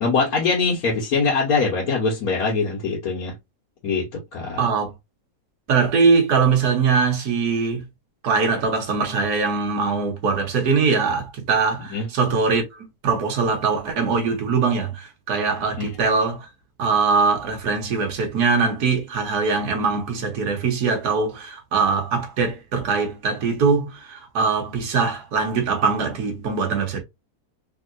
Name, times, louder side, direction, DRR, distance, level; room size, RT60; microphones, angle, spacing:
voice 1, 0.0-3.3 3.8-4.6 11.9-12.1 15.8-15.9, left 4 dB, 65° left, 1.4 m, -23 dB
voice 2, 4.6-4.9 5.7-7.8 8.2-16.5 16.8-27.0, right 4 dB, 75° right, 1.6 m, -22 dB
3.6 x 2.8 x 2.5 m
omnidirectional pair, 1.7 m